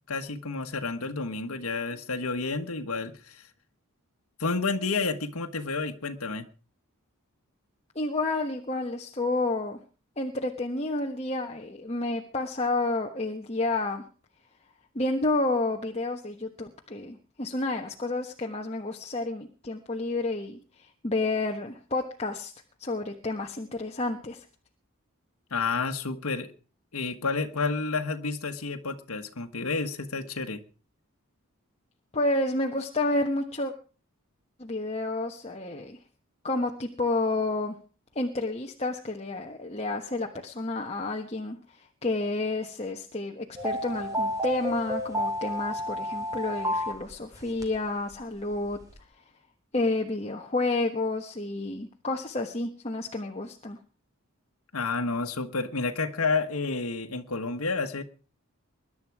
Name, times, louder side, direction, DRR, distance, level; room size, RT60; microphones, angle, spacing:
voice 1, 0.1-3.5 4.4-6.5 25.5-26.5 26.9-30.6 54.7-58.0, left 4 dB, 75° left, 5 dB, 1.3 m, -30 dB
voice 2, 7.9-9.8 10.2-14.0 14.9-22.5 22.8-24.4 32.1-33.7 34.6-36.0 36.4-37.7 38.1-48.8 49.7-53.8, left 2 dB, 30° left, 2 dB, 1.2 m, -30 dB
sound 1, 43.6-47.8 48.1-48.2 48.5-48.9, equal, 15° right, 2.6 m, -31 dB
21.5 x 11.0 x 4.8 m, 0.38 s
head